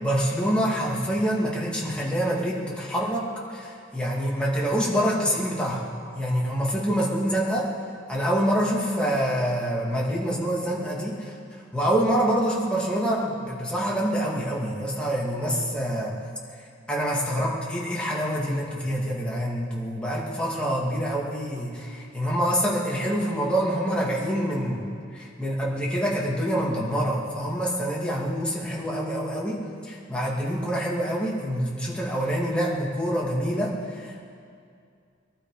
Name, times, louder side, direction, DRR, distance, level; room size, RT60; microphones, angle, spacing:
voice 1, 0.0-5.8 6.1-7.7 8.1-16.1 16.9-24.8 25.1-34.2, equal, 5° left, -5 dB, 2.4 m, -26 dB
22.5 x 12.5 x 5.0 m, 2.3 s
head